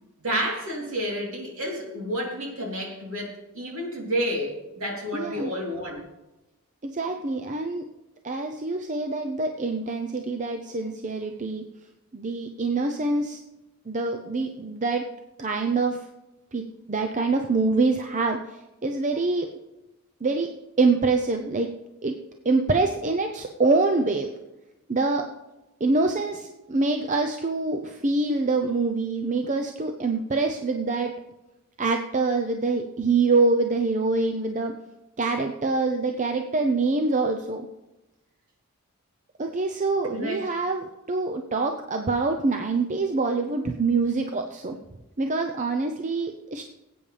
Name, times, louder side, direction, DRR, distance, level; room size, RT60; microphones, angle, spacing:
voice 1, 0.2-6.0 40.1-40.4, equal, 65° right, -1 dB, 3.2 m, -30 dB
voice 2, 5.1-5.5 6.8-7.8 8.2-11.6 12.1-13.4 13.9-15.1 15.4-16.0 16.5-19.5 20.2-20.5 20.8-21.7 22.0-22.1 22.4-24.3 24.9-25.3 25.8-31.1 31.8-34.7 35.2-37.6 39.4-44.8 45.2-46.6, right 3 dB, 35° right, 4 dB, 0.6 m, -25 dB
19.0 x 8.8 x 3.4 m, 0.99 s
head